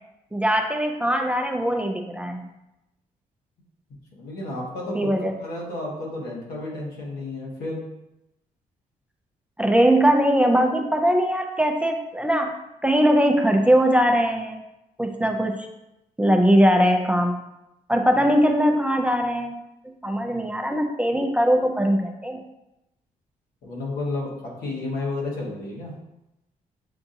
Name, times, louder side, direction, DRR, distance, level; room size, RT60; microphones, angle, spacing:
voice 1, 0.3-2.5 4.9-5.3 9.6-12.5 12.8-14.6 15.0-15.6 16.2-17.4 17.9-19.6 20.0-22.4, equal, 10° right, 3 dB, 0.4 m, -20 dB
voice 2, 4.2-5.1 5.4-7.8 23.6-25.9, left 2 dB, 80° left, -3 dB, 1.3 m, -31 dB
6.8 x 2.5 x 2.7 m, 0.90 s
cardioid pair, 90°, 15 cm